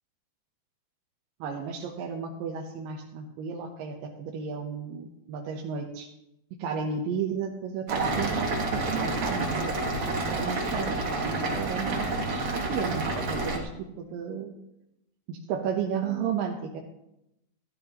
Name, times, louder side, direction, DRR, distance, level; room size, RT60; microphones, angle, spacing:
voice 1, 1.4-6.1 6.6-9.9 10.3-14.5 15.3-16.8, right 6 dB, 80° right, 1 dB, 2.6 m, -33 dB
sound 1, 7.9-13.6, right 2 dB, 45° right, 1.9 m, -29 dB
15.5 x 12.5 x 2.9 m, 0.88 s
omnidirectional pair, 4.0 m